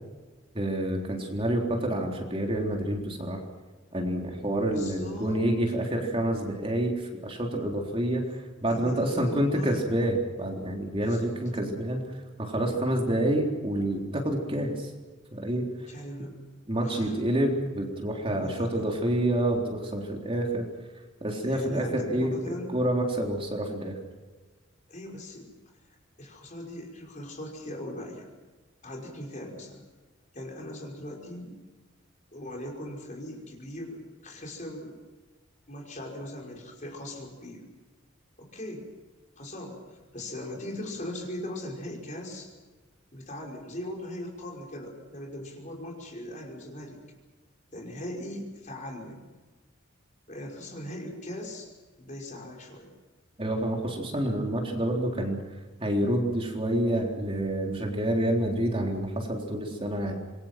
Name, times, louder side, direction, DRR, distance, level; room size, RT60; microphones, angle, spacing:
voice 1, 0.5-3.4 3.9-12.0 12.4-14.9 15.3-15.6 16.7-20.7 21.2-24.0 53.4-55.4 55.8-60.1, right 1 dB, 30° right, 0 dB, 3.8 m, -28 dB
voice 2, 4.7-5.4 8.7-9.9 11.0-11.4 12.6-12.8 15.9-16.4 16.8-17.2 18.3-18.8 21.5-22.8 24.9-25.5 26.2-28.3 28.8-29.8 30.3-31.6 32.3-35.0 35.7-37.7 38.4-38.9 39.4-42.5 43.1-47.0 47.7-49.3 50.3-51.7 52.0-52.9, left 1 dB, 40° left, 1 dB, 5.5 m, -39 dB
27.0 x 22.5 x 6.1 m, 1.3 s
head